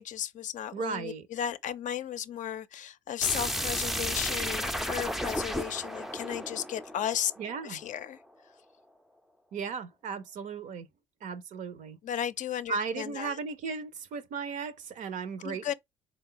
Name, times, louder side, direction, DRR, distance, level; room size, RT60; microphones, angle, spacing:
voice 1, 0.0-7.3 7.6-8.2 12.0-13.4 15.4-15.7, left 10 dB, 60° left, 0.5 m, -34 dB
voice 2, 0.7-1.3 7.4-7.8 9.5-10.9 11.2-12.0 12.7-15.7, right 5 dB, 60° right, 0.6 m, -36 dB
sound 1, 3.2-7.9, equal, ahead, 0.4 m, -33 dB
3.8 x 2.3 x 3.7 m
supercardioid pair, 65°, 15 cm